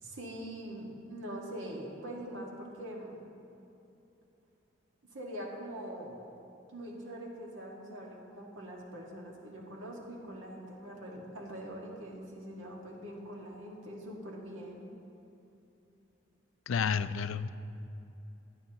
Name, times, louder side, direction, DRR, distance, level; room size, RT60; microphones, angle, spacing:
voice 1, 0.0-3.2 5.1-6.2 6.7-14.9, right 1 dB, 85° right, -2 dB, 1.9 m, -43 dB
voice 2, 16.7-17.5, left 6 dB, 90° left, 12 dB, 0.4 m, -30 dB
17.5 x 10.5 x 3.0 m, 2.8 s
head